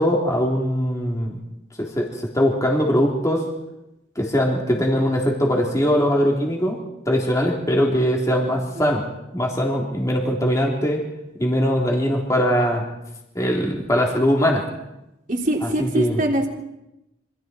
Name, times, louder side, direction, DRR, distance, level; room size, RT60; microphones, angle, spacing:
voice 1, 0.0-1.4 1.8-3.5 4.1-6.8 7.1-9.0 9.3-11.0 11.4-12.8 13.3-14.6 15.6-16.2, equal, 15° left, -1 dB, 3.4 m, -21 dB
voice 2, 15.3-16.5, right 1 dB, 40° right, 1 dB, 3.4 m, -23 dB
28.5 x 26.0 x 4.6 m, 0.91 s
head